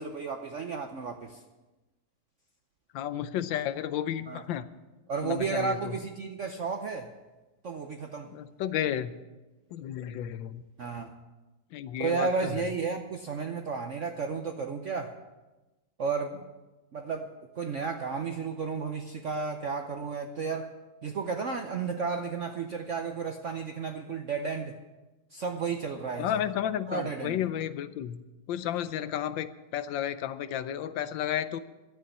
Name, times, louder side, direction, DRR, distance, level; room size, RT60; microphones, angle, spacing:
voice 1, 0.0-1.4 4.3-4.4 5.1-7.1 7.6-8.3 10.8-11.1 12.0-15.1 16.0-16.4 16.9-17.3 17.6-20.7 21.0-24.8 25.3-26.4 26.9-27.5, right 5 dB, 65° right, 5 dB, 0.7 m, -33 dB
voice 2, 2.9-4.7 5.2-6.0 8.3-9.1 9.7-10.6 11.7-12.7 26.2-28.2 28.5-31.6, left 10 dB, 75° left, 13 dB, 1.3 m, -32 dB
11.5 x 8.3 x 8.1 m, 1.1 s
omnidirectional pair, 2.2 m